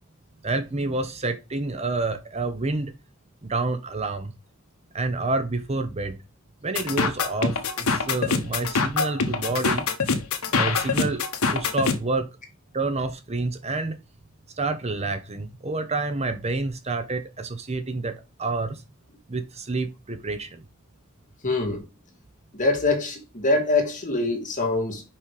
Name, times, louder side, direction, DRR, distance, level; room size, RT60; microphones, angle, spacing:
voice 1, 0.4-2.9 3.4-4.3 4.9-6.2 6.6-9.9 10.5-11.3 11.5-12.3 12.7-14.0 14.6-18.8 19.3-20.6, right 3 dB, 30° right, 0.8 m, -28 dB
sound 1, 6.8-12.0, left 4 dB, 80° left, 1.1 m, -24 dB
voice 2, 21.4-21.8 22.5-25.0, left 2 dB, 35° left, 2.2 m, -24 dB
5.8 x 5.3 x 4.8 m
head